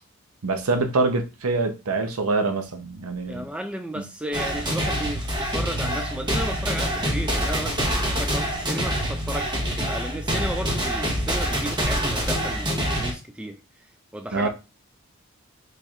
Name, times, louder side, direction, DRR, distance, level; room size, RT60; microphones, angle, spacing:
voice 1, 0.4-3.5 4.0-4.1 14.3-14.5, right 3 dB, 90° right, 0.7 m, -25 dB
voice 2, 3.3-12.7 13.0-13.9 14.1-14.5, right 1 dB, 5° right, 0.3 m, -34 dB
sound 1, 4.3-13.1, equal, 20° right, 0.9 m, -26 dB
4.2 x 3.2 x 2.4 m
head